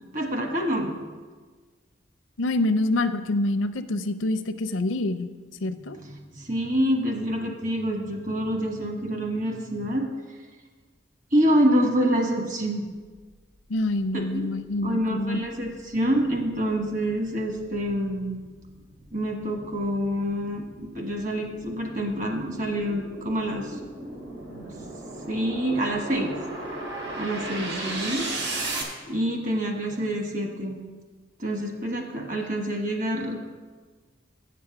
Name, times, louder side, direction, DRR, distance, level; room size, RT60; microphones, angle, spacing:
voice 1, 0.1-0.9 5.7-10.4 11.3-12.9 14.1-18.4 19.1-23.8 25.3-26.4 27.2-28.3 29.1-30.8 31.4-33.4, equal, 40° right, 2 dB, 1.3 m, -27 dB
voice 2, 2.4-5.3 5.6-6.0 13.7-15.4, left 2 dB, 75° left, 10 dB, 0.5 m, -26 dB
sound 1, 14.1-14.2 14.7-28.8, right 2 dB, 60° right, 1.8 m, -37 dB
8.2 x 7.6 x 6.0 m, 1.4 s
head